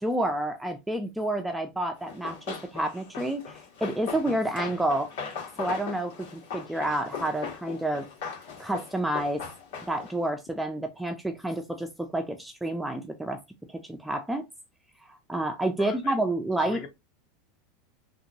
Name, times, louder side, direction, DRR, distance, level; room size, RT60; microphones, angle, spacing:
voice 1, 0.0-5.1 5.6-8.1 8.6-9.4 9.9-13.4 13.7-14.4 15.3-16.8, right 1 dB, 5° right, 0.3 m, -29 dB
Run, 2.1-10.2, left 6 dB, 75° left, 1.7 m, -39 dB
voice 2, 15.8-16.2 16.6-16.9, left 8 dB, 40° left, 0.7 m, -41 dB
2.9 x 2.8 x 2.6 m
supercardioid pair, 160°, 0 cm